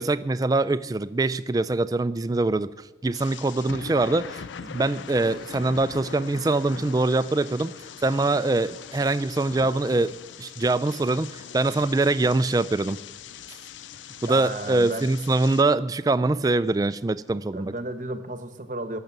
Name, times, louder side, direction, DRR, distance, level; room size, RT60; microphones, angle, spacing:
voice 1, 0.0-2.7 3.0-7.7 8.0-13.0 14.2-17.7, right 2 dB, 20° right, 14 dB, 0.3 m, -24 dB
sound 1, 3.1-15.6, left 7 dB, 90° left, 0.4 m, -41 dB
voice 2, 14.2-15.1 17.5-19.0, right 2 dB, 45° right, 10 dB, 1.0 m, -33 dB
15.5 x 6.7 x 8.9 m, 1.2 s
head